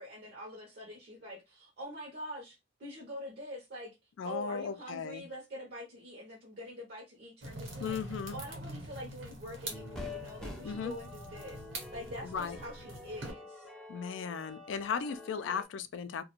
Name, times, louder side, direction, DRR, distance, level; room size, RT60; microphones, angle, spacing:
voice 1, 0.0-8.0 8.3-13.7, equal, 55° right, 0.6 m, -45 dB
voice 2, 4.2-5.3 7.8-8.4 10.6-10.9 12.2-12.6 13.9-16.2, left 6 dB, 70° left, 0.3 m, -36 dB
sound 1, 7.4-13.3, right 1 dB, 80° right, 0.9 m, -45 dB
sound 2, 9.7-15.6, left 2 dB, 5° left, 0.4 m, -47 dB
2.4 x 2.1 x 2.9 m
head